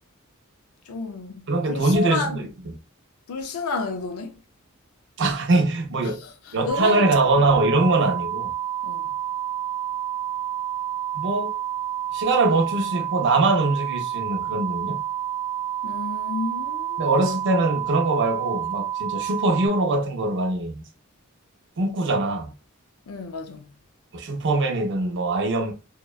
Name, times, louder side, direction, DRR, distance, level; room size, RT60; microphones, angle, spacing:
voice 1, 0.9-2.4 3.3-4.4 6.1-7.3 8.8-9.1 15.8-17.1 23.1-23.7, left 4 dB, 85° left, 0.5 m, -31 dB
voice 2, 1.5-2.7 5.2-6.2 6.5-8.5 11.1-11.6 12.1-15.0 17.0-20.8 21.8-22.5 24.1-25.7, right 2 dB, 60° right, 0.5 m, -22 dB
sound 1, 6.7-19.7, right 11 dB, 10° right, 0.5 m, -29 dB
2.8 x 2.1 x 2.2 m
head